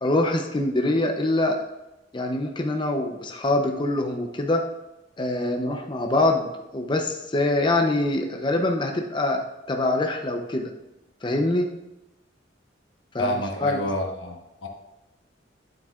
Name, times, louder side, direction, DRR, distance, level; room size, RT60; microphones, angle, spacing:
voice 1, 0.0-1.6 2.1-4.6 5.2-10.7 11.2-11.7 13.1-13.3 13.6-13.8, left 2 dB, 25° left, 3 dB, 0.6 m, -24 dB
voice 2, 13.2-14.7, left 1 dB, 90° left, 2 dB, 1.3 m, -29 dB
9.0 x 7.8 x 2.4 m, 0.99 s
head